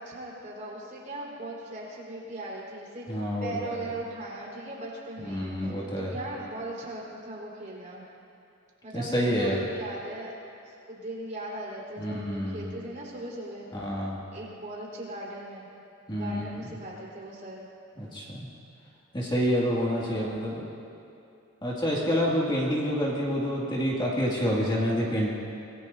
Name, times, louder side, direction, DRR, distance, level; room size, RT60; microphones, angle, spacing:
voice 1, 0.0-8.1 8.8-10.3 10.7-13.7 14.3-15.7 16.1-17.7 20.0-20.4, right 1 dB, 35° right, -5 dB, 4.2 m, -39 dB
voice 2, 3.1-3.8 5.2-6.1 8.9-9.6 12.0-12.7 13.7-14.2 16.1-16.4 18.0-18.5 19.1-20.6 21.6-25.3, equal, 20° left, -5 dB, 2.3 m, -28 dB
26.0 x 19.5 x 2.8 m, 2.7 s
head